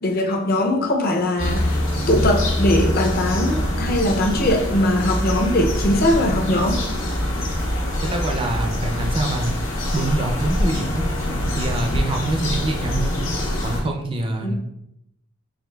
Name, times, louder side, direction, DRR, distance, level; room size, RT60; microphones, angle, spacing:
voice 1, 0.0-6.8 14.4-14.5, left 1 dB, 45° left, 3 dB, 0.5 m, -21 dB
sound 1, 1.4-13.8, left 1 dB, 75° left, 1.1 m, -24 dB
voice 2, 8.0-9.5 9.9-11.0 11.6-13.2 13.6-14.5, right 2 dB, 25° right, 3 dB, 0.4 m, -25 dB
4.9 x 3.1 x 2.2 m, 0.80 s
head